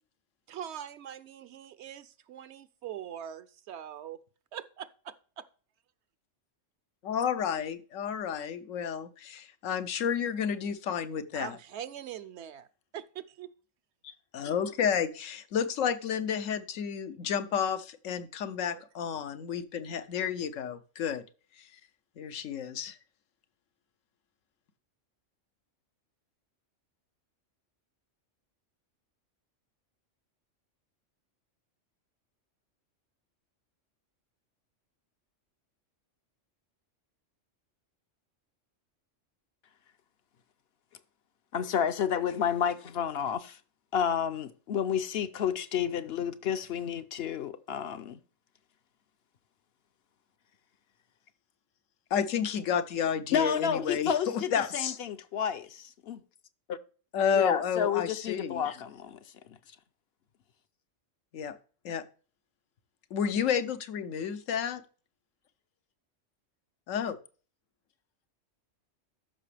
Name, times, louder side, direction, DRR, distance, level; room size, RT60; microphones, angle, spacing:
voice 1, 0.5-4.2 4.5-5.4 11.3-12.7 12.9-13.5 18.7-18.8, right 10 dB, 70° right, 0.8 m, -42 dB
voice 2, 7.0-11.6 14.0-21.2 21.6-21.7 22.2-23.0 52.1-55.0 57.1-58.8 61.3-61.6 61.8-62.0 63.1-64.8 66.9-67.2, left 7 dB, 90° left, 1.1 m, -31 dB
voice 3, 41.5-43.6 43.9-48.2 53.3-56.2 56.7-56.8 57.3-59.2 59.5-59.6, left 8 dB, 65° left, 0.7 m, -30 dB
13.0 x 5.9 x 3.3 m
omnidirectional pair, 1.3 m